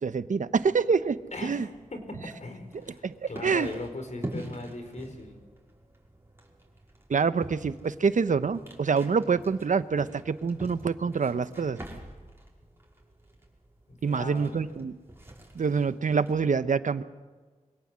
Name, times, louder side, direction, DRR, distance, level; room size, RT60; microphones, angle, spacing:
voice 1, 0.0-1.2 1.4-1.7 2.7-3.7 7.1-11.8 14.0-14.9 15.5-17.0, right 5 dB, 70° right, 13 dB, 1.0 m, -26 dB
sound 1, 0.6-16.5, right 1 dB, 20° right, 5.7 m, -46 dB
voice 2, 1.3-5.4 13.9-14.7, left 2 dB, 60° left, 7 dB, 4.7 m, -39 dB
24.5 x 17.5 x 7.6 m, 1.4 s
cardioid pair, 50°, 13 cm